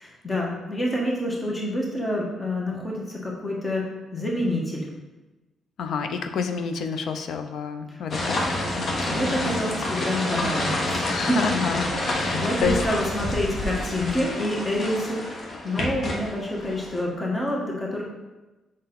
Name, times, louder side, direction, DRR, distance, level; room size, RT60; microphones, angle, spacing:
voice 1, 0.0-4.9 7.9-8.0 9.1-11.7 12.3-18.0, left 1 dB, 30° left, -2 dB, 1.5 m, -27 dB
voice 2, 5.8-8.9 11.1-12.8, left 5 dB, 70° left, 7 dB, 0.6 m, -29 dB
sound 1, 8.1-17.0, left 1 dB, 50° left, 1.2 m, -28 dB
6.5 x 4.0 x 4.1 m, 1.1 s
supercardioid pair, 50°, 0 cm